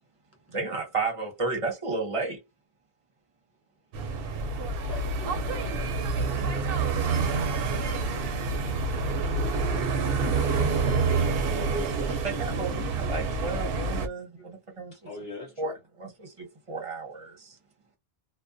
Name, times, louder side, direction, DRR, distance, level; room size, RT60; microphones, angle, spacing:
voice 1, 0.5-2.4 6.2-6.8 12.2-14.9 15.6-15.7 16.0-17.6, right 3 dB, 35° right, 0.8 m, -33 dB
sound 1, 3.9-14.1, right 4 dB, 65° right, 0.7 m, -27 dB
voice 2, 4.8-5.9 14.9-15.8, left 2 dB, 65° left, 1.0 m, -45 dB
voice 3, 10.0-12.6 13.0-13.3 14.1-14.5, equal, 15° left, 0.6 m, -40 dB
2.3 x 2.2 x 2.5 m
omnidirectional pair, 1.1 m